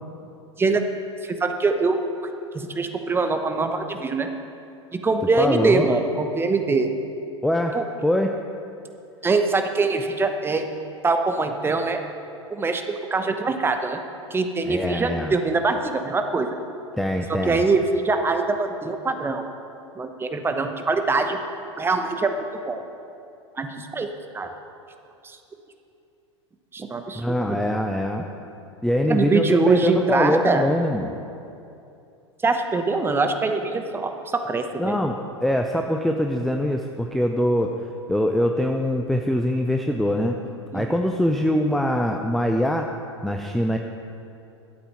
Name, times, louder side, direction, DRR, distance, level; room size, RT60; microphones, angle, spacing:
voice 1, 1.2-2.0 2.5-4.3 5.0-6.9 7.7-7.8 9.2-10.6 11.0-12.0 12.5-14.0 14.3-16.5 17.3-19.5 20.0-21.4 21.8-22.8 23.5-24.1 24.3-24.5 25.2-25.4 26.7-27.6 29.1-30.6 32.4-35.0 40.7-40.9, right 3 dB, 15° right, 6 dB, 1.0 m, -23 dB
voice 2, 5.4-5.9 7.4-7.8 8.0-8.4 14.7-15.3 17.0-17.6 27.1-28.3 28.8-31.1 34.8-37.7 38.1-40.4 40.7-42.9 43.2-43.8, equal, ahead, 3 dB, 0.6 m, -23 dB
12.5 x 8.3 x 5.8 m, 2.6 s
figure-of-eight pair, 90°, 15 cm